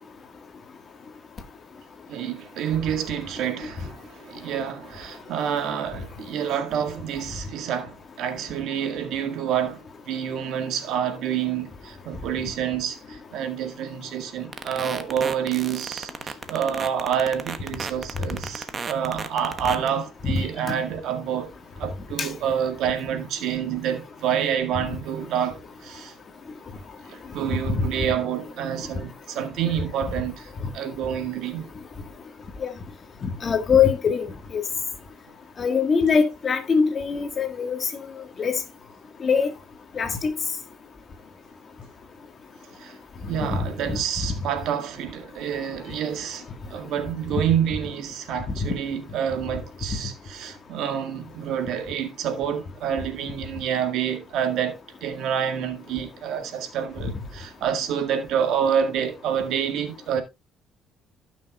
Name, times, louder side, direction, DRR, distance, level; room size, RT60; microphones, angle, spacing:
voice 1, 2.1-26.1 27.1-31.7 42.8-43.0 43.3-60.2, right 8 dB, 75° right, 1.9 m, -28 dB
sound 1, 14.5-19.9, right 5 dB, 35° right, 1.0 m, -33 dB
voice 2, 20.2-20.7 22.2-22.3 27.6-27.8 32.6-32.7 33.2-34.6 35.6-38.1 38.4-38.5 39.2-39.5 39.9-40.3 43.5-44.3 47.3-47.4 48.6-48.8, left 6 dB, 35° left, 1.7 m, -23 dB
16.0 x 6.2 x 2.4 m
cardioid pair, 120°, 0 cm